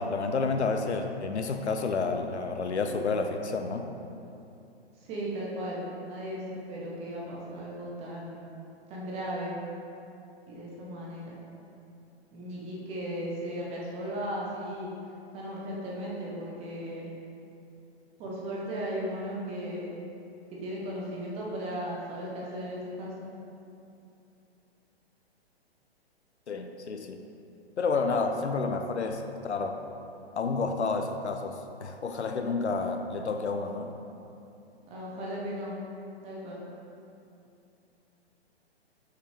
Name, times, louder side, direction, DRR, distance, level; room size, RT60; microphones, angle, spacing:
voice 1, 0.0-3.9 26.5-27.2 27.8-29.8 30.4-34.0, left 4 dB, 90° left, 5 dB, 0.5 m, -30 dB
voice 2, 5.0-8.6 8.9-9.5 10.5-11.4 12.3-14.9 15.3-17.1 18.2-19.9 20.5-23.1 34.9-35.7 36.2-36.6, equal, 20° right, -5 dB, 0.9 m, -36 dB
5.6 x 5.3 x 3.3 m, 2.7 s
figure-of-eight pair, 120°, 33 cm